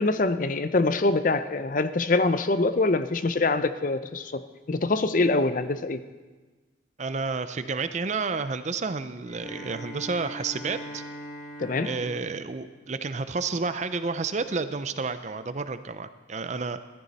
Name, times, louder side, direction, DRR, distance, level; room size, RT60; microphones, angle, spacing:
voice 1, 0.0-4.4 4.7-6.0 11.6-11.9, left 3 dB, 45° left, 12 dB, 0.5 m, -24 dB
voice 2, 7.0-11.0 11.8-16.8, right 4 dB, 40° right, 11 dB, 0.5 m, -30 dB
Bowed string instrument, 9.2-13.6, equal, 30° left, 3.9 m, -42 dB
14.0 x 13.5 x 4.1 m, 1.3 s
head